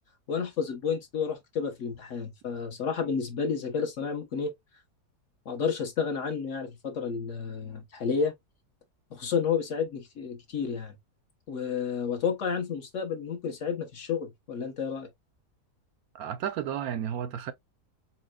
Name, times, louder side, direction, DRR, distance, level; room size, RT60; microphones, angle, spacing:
voice 1, 0.3-4.5 5.4-8.3 9.1-10.9 11.5-15.1, left 6 dB, 50° left, 1.3 m, -31 dB
voice 2, 16.1-17.5, right 9 dB, 70° right, 1.0 m, -32 dB
4.3 x 4.2 x 2.3 m
omnidirectional pair, 1.7 m